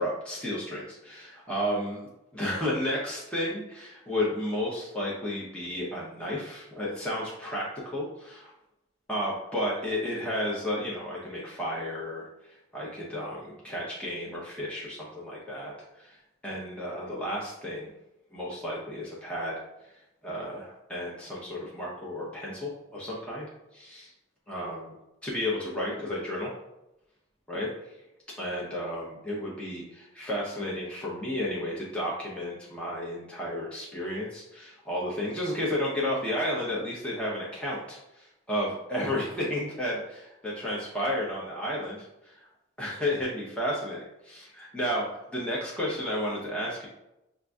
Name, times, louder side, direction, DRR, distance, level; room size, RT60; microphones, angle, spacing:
voice 1, 0.0-2.0 2.3-8.5 9.1-16.2 16.4-17.9 18.3-23.5 23.7-24.1 24.5-25.0 25.2-26.5 27.5-27.7 28.4-42.4 42.8-46.9, left 1 dB, 5° left, -6 dB, 0.7 m, -32 dB
6.4 x 2.5 x 2.3 m, 0.90 s
head